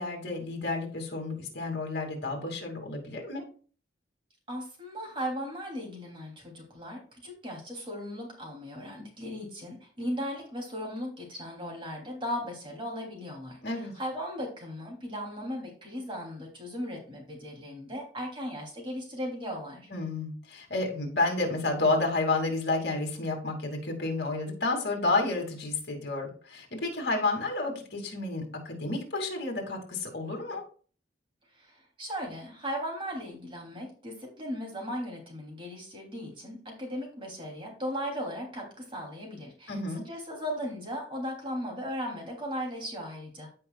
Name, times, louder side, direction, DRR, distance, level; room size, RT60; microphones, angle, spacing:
voice 1, 0.0-3.4 13.6-13.9 19.9-30.6 39.7-40.0, left 2 dB, 60° left, 2 dB, 2.4 m, -30 dB
voice 2, 4.5-19.9 31.5-39.8 40.0-43.5, equal, 30° right, 0 dB, 3.0 m, -37 dB
15.5 x 5.5 x 2.3 m, 0.41 s
head